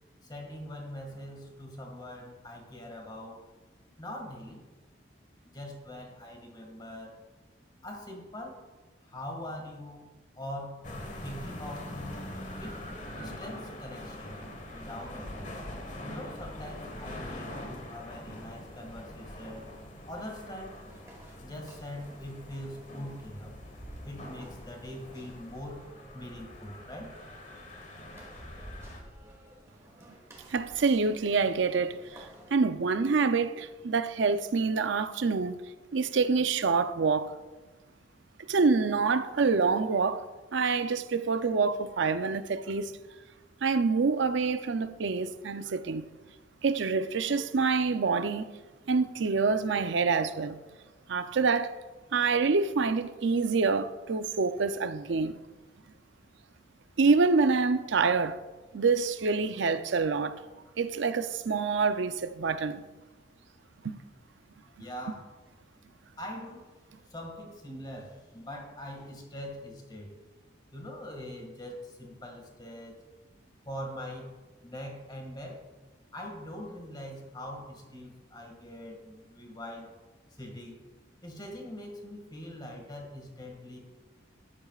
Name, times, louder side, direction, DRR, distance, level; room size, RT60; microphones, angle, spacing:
voice 1, 0.2-3.4 4.0-4.6 5.4-7.1 7.8-8.6 9.0-10.1 10.4-10.9 11.2-12.3 12.6-12.8 13.2-14.4 14.7-15.5 16.0-19.7 20.1-20.8 21.4-23.5 24.0-25.8 26.1-27.2 64.8-65.3 66.2-66.7 67.1-70.1 70.7-73.0 73.7-74.3 74.6-75.6 76.1-79.9 80.3-80.8 81.2-83.8, left 1 dB, 20° left, 1.9 m, -42 dB
sound 1, 10.8-29.0, left 1 dB, 40° left, 1.3 m, -44 dB
sound 2, 20.6-32.5, equal, 15° right, 1.6 m, -52 dB
voice 2, 30.5-35.6 35.9-37.4 38.5-43.0 43.6-46.1 46.6-48.5 48.9-50.6 51.1-51.8 52.1-55.4 57.0-58.4 58.7-60.4 60.8-62.8 63.8-64.0, right 4 dB, 70° right, 0.5 m, -26 dB
13.0 x 11.0 x 2.4 m
head